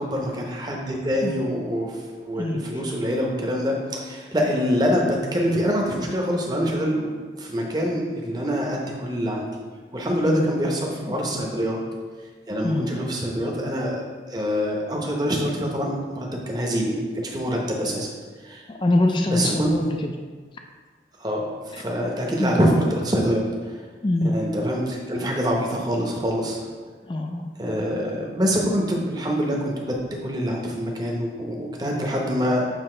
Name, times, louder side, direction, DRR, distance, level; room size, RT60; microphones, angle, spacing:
voice 1, 0.0-1.9 2.3-7.1 7.4-9.5 9.9-11.8 12.5-18.1 18.4-18.6 19.3-19.7 21.2-21.4 21.8-23.7 24.2-26.6 27.6-30.0 30.2-32.6, equal, 25° right, 0 dB, 0.8 m, -25 dB
voice 2, 18.7-20.1 21.7-21.8 22.4-22.5 24.0-24.3 27.1-27.5, left 2 dB, 25° left, 4 dB, 0.3 m, -24 dB
7.7 x 2.8 x 4.3 m, 1.5 s
head